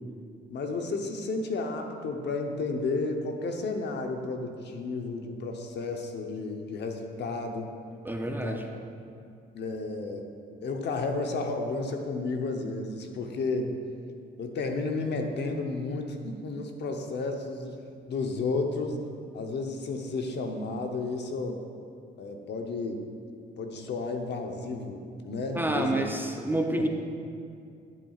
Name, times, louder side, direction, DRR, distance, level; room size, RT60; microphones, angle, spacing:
voice 1, 0.5-7.7 8.2-8.6 9.5-10.3 10.6-13.7 14.4-17.8 18.1-19.0 19.3-21.6 22.2-23.0 23.6-26.1 26.5-26.9, left 3 dB, 60° left, 4 dB, 0.9 m, -32 dB
voice 2, 8.0-8.7 25.6-26.9, right 1 dB, 10° right, 3 dB, 0.5 m, -28 dB
11.5 x 7.4 x 2.4 m, 2.4 s
cardioid pair, 90°, 20 cm